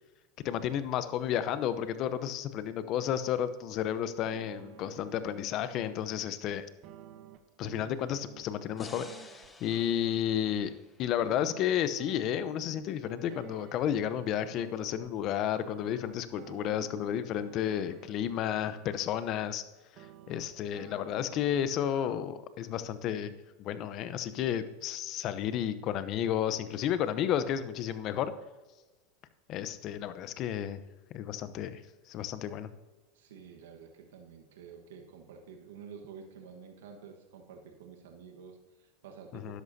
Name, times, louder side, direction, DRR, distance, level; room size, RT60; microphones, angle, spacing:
voice 1, 0.4-6.7 7.6-9.0 9.6-10.7 11.0-19.6 20.3-23.3 23.6-28.3 29.5-30.8 31.1-31.8 32.1-32.7 39.3-39.6, left 10 dB, 45° left, 12 dB, 0.8 m, -32 dB
sound 1, 4.2-6.4 6.8-10.7 11.2-15.1 15.6-19.5 19.9-21.6, right 11 dB, 50° right, 0.9 m, -52 dB
sound 2, 8.8-12.0, left 3 dB, 15° left, 0.9 m, -51 dB
voice 2, 33.1-39.6, right 6 dB, 75° right, 3 dB, 1.4 m, -50 dB
12.5 x 10.5 x 2.8 m, 1.2 s
hypercardioid pair, 105°, 0 cm